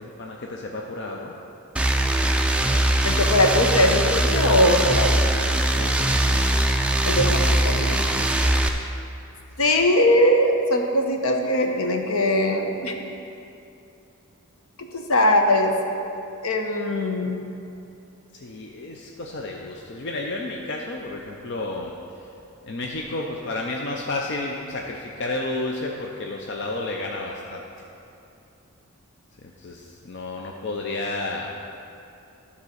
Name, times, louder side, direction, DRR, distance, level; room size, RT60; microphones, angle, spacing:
voice 1, 0.0-1.3 5.8-6.5 18.3-22.3 22.6-27.6 29.6-31.5, left 2 dB, 50° left, 0 dB, 0.5 m, -31 dB
sound 1, 1.8-8.7, right 1 dB, 5° right, 0.3 m, -21 dB
voice 2, 3.0-5.2 7.0-8.2 9.6-13.0 14.8-15.8 16.4-17.4, left 1 dB, 70° left, 3 dB, 0.9 m, -21 dB
12.0 x 4.2 x 6.4 m, 2.7 s
head